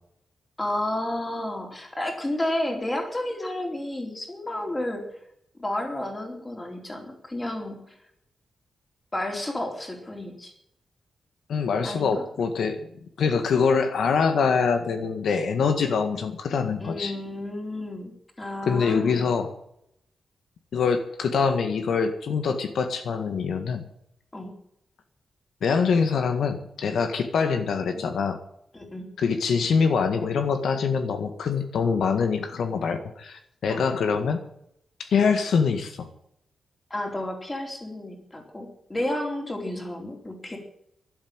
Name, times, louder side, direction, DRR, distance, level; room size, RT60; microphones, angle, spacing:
voice 1, 0.6-5.0 5.6-8.0 9.1-10.5 11.8-12.2 16.8-18.1 18.4-19.3 24.3-24.6 28.7-29.1 33.7-33.8 36.9-40.6, left 1 dB, 15° left, 2 dB, 4.1 m, -31 dB
voice 2, 11.5-12.9 13.2-17.1 18.7-19.5 20.7-23.8 25.6-28.4 29.2-34.4 35.0-36.1, left 5 dB, 80° left, 7 dB, 1.7 m, -24 dB
12.5 x 12.0 x 8.9 m, 0.74 s
wide cardioid pair, 160°, 0 cm